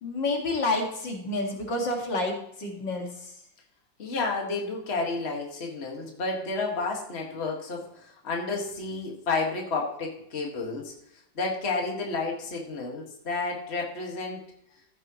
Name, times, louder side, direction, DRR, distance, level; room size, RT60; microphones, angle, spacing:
voice 1, 0.0-3.3, left 2 dB, 70° left, 1 dB, 2.6 m, -29 dB
voice 2, 4.0-10.9 11.4-14.4, left 3 dB, 35° left, -1 dB, 2.1 m, -31 dB
15.0 x 7.7 x 3.1 m, 0.73 s
omnidirectional pair, 2.0 m